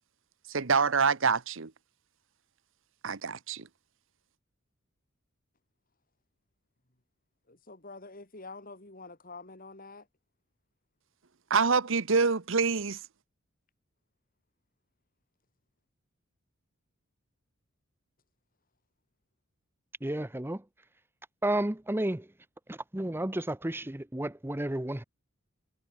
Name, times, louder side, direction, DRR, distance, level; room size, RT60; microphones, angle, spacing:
voice 1, 0.5-1.7 3.0-3.7 11.5-13.0, right 5 dB, 60° right, 1.0 m, -26 dB
voice 2, 7.5-10.0, left 3 dB, 40° left, 3.9 m, -47 dB
voice 3, 20.0-20.6 21.4-22.3 22.7-25.0, right 1 dB, 10° right, 0.7 m, -32 dB
head